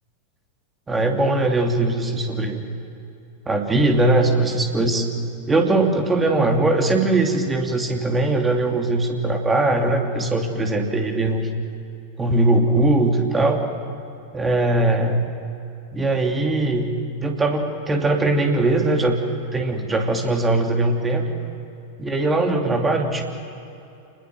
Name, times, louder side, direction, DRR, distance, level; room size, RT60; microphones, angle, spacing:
voice 1, 0.9-2.6 3.5-5.1 5.5-11.5 12.2-13.6 14.3-15.3 15.9-16.9 17.2-19.2 19.5-21.2 22.0-23.2, right 2 dB, 15° right, 3 dB, 2.9 m, -20 dB
27.0 x 20.5 x 7.8 m, 2.8 s
figure-of-eight pair, 90°, 0 cm